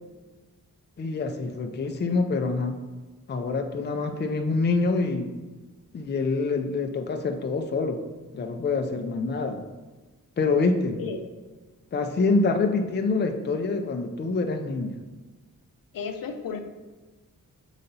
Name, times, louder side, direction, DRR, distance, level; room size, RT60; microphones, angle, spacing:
voice 1, 1.0-2.8 3.3-5.3 5.9-8.0 8.3-9.7 10.4-11.0 11.9-15.0, left 3 dB, 30° left, 5 dB, 0.5 m, -26 dB
voice 2, 15.9-16.6, left 5 dB, 75° left, 6 dB, 0.7 m, -33 dB
6.6 x 4.0 x 4.0 m, 1.3 s
wide cardioid pair, 130°, 34 cm